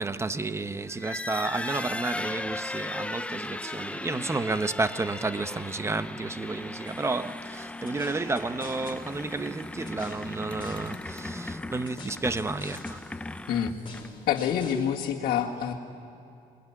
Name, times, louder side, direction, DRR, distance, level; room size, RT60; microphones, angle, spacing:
voice 1, 0.0-13.0, right 3 dB, 15° right, 0.8 m, -31 dB
sound 1, 0.9-14.3, left 2 dB, 5° left, 0.5 m, -37 dB
sound 2, 6.9-14.9, left 4 dB, 30° left, 4.8 m, -48 dB
voice 2, 14.3-15.7, left 8 dB, 65° left, 2.0 m, -27 dB
27.0 x 21.5 x 9.9 m
cardioid pair, 110°, 17 cm